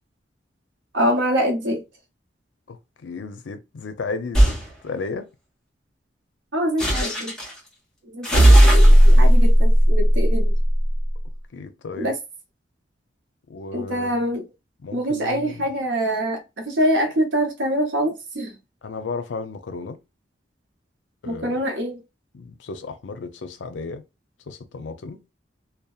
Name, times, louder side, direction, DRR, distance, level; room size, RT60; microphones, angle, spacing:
voice 1, 0.9-1.8 6.5-7.3 8.1-10.5 12.0-12.2 13.7-14.4 14.9-18.5 21.3-22.0, equal, 85° right, 0.8 m, -24 dB
voice 2, 2.7-4.6 4.8-5.3 11.5-12.1 13.5-14.1 14.8-15.7 18.8-20.0 21.2-21.6 22.3-24.0 24.5-25.2, left 4 dB, 80° left, 0.5 m, -34 dB
sound 1, 4.3-4.6 6.8-7.5 8.2-10.9, equal, 5° left, 1.2 m, -14 dB
2.8 x 2.1 x 2.3 m
head